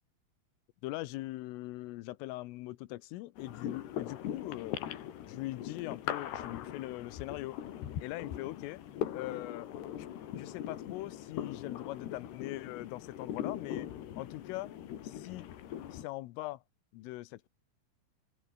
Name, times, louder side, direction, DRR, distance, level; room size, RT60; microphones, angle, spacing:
voice 1, 0.8-4.9 5.3-7.6 8.0-8.8 9.1-9.7 10.0-10.1 10.3-13.9 14.2-14.8 15.0-15.5 15.9-16.6 16.9-17.5, left 18 dB, 80° left, 3.6 m, -41 dB
sound 1, 3.4-16.0, left 11 dB, 60° left, 3.8 m, -41 dB
open air
omnidirectional pair, 5.9 m